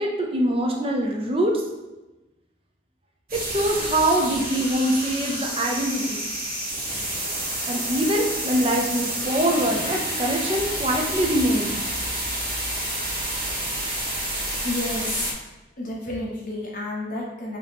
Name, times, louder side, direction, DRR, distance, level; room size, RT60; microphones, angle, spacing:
voice 1, 0.0-1.5 3.3-6.2 7.7-11.7, right 1 dB, 30° right, 1 dB, 0.6 m, -23 dB
sound 1, 3.3-15.3, right 1 dB, 50° right, 1.3 m, -29 dB
voice 2, 14.6-15.3 15.8-17.6, left 2 dB, 45° left, -3 dB, 1.2 m, -30 dB
4.9 x 3.0 x 3.4 m, 1.1 s
head